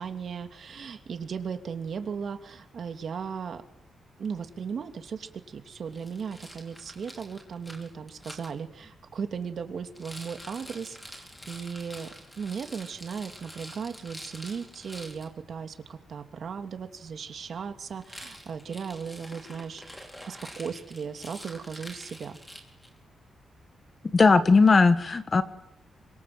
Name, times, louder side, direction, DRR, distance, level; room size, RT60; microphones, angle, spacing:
voice 1, 0.0-3.6 4.2-12.1 12.4-20.0 20.3-22.4, right 6 dB, 55° right, 7 dB, 2.8 m, -37 dB
Rattle, 5.9-8.5 9.9-15.3 18.0-23.0, equal, 10° left, 4.8 m, -46 dB
voice 2, 24.1-25.4, left 4 dB, 30° left, 11 dB, 1.6 m, -18 dB
27.5 x 25.5 x 7.9 m, 0.77 s
wide cardioid pair, 140°, 0 cm